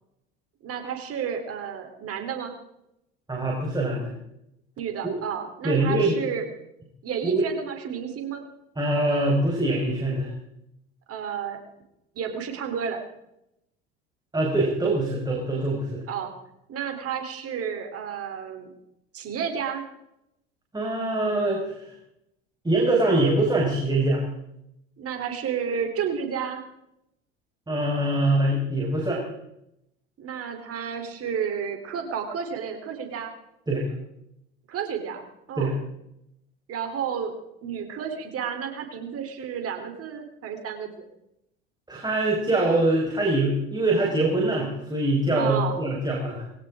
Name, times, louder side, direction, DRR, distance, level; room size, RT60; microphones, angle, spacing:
voice 1, 0.6-2.5 4.8-6.5 7.0-8.4 11.1-11.6 12.2-13.0 16.1-16.3 16.7-18.7 19.1-19.8 25.0-26.6 30.2-33.3 34.7-35.8 36.7-37.4 37.6-41.1 45.3-45.8, right 7 dB, 45° right, 5 dB, 3.8 m, -31 dB
voice 2, 3.3-4.1 5.0-5.1 5.6-6.2 7.2-7.4 8.8-10.3 14.3-16.0 20.7-21.9 22.6-24.2 27.7-29.2 33.7-33.9 35.6-35.7 41.9-46.4, right 2 dB, 15° right, -2 dB, 5.5 m, -23 dB
21.5 x 17.0 x 3.8 m, 0.82 s
hypercardioid pair, 75°, 32 cm